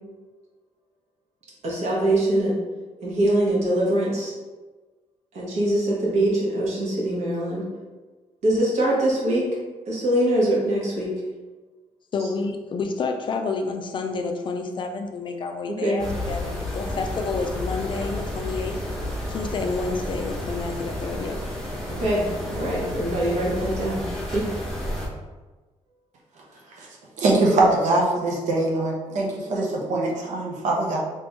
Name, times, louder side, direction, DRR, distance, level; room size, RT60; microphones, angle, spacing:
voice 1, 1.6-2.5 3.0-4.3 5.3-7.6 8.4-9.5 9.9-11.1 15.8-16.0 21.9-24.0 24.3-24.4, right 1 dB, 70° right, -5 dB, 1.3 m, -23 dB
voice 2, 12.1-18.8 19.3-21.4, left 4 dB, 40° left, 4 dB, 0.4 m, -29 dB
sound 1, 16.0-25.1, left 1 dB, 5° left, 0.8 m, -31 dB
voice 3, 27.2-31.0, right 2 dB, 85° right, -2 dB, 0.7 m, -22 dB
3.5 x 3.0 x 3.0 m, 1.3 s
wide cardioid pair, 150°, 12 cm